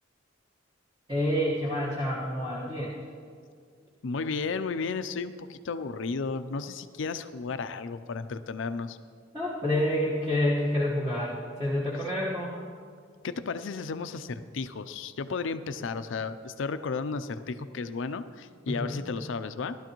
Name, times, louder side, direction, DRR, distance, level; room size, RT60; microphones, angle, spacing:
voice 1, 1.1-3.0 9.3-12.7 18.7-19.0, left 1 dB, 20° right, -7 dB, 1.4 m, -28 dB
voice 2, 4.0-9.0 13.2-19.8, left 4 dB, 70° left, 11 dB, 0.5 m, -33 dB
15.5 x 12.0 x 3.0 m, 2.1 s
head